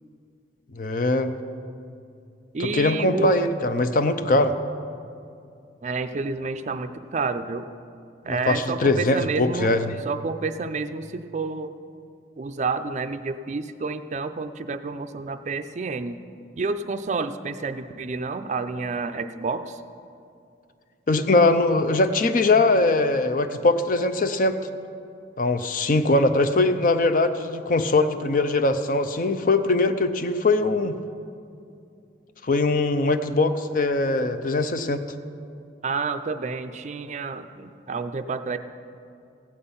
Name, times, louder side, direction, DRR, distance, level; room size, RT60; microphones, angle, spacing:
voice 1, 0.7-1.3 2.6-4.5 8.3-9.9 21.1-24.6 25.4-31.0 32.4-35.0, left 2 dB, 45° left, 10 dB, 0.6 m, -21 dB
voice 2, 2.5-3.4 5.8-7.7 8.2-9.7 10.0-11.7 12.4-16.2 16.6-19.8 35.8-38.6, right 4 dB, 40° right, 10 dB, 0.4 m, -29 dB
15.5 x 8.7 x 5.5 m, 2.5 s
head